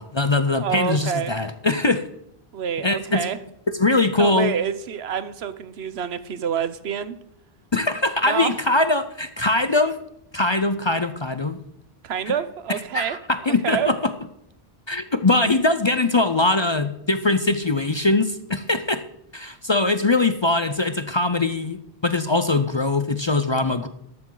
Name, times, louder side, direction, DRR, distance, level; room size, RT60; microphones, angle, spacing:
voice 1, 0.0-2.0 2.8-3.3 3.8-4.5 7.7-9.9 10.3-11.6 12.3-12.4 12.9-14.1 14.9-19.0 19.3-23.9, left 2 dB, 35° left, 10 dB, 0.5 m, -22 dB
voice 2, 0.6-1.3 2.5-3.4 4.2-7.2 8.2-8.6 12.0-13.2 13.5-13.9, right 8 dB, 80° right, 13 dB, 1.1 m, -27 dB
13.5 x 12.0 x 3.9 m, 0.78 s
omnidirectional pair, 1.0 m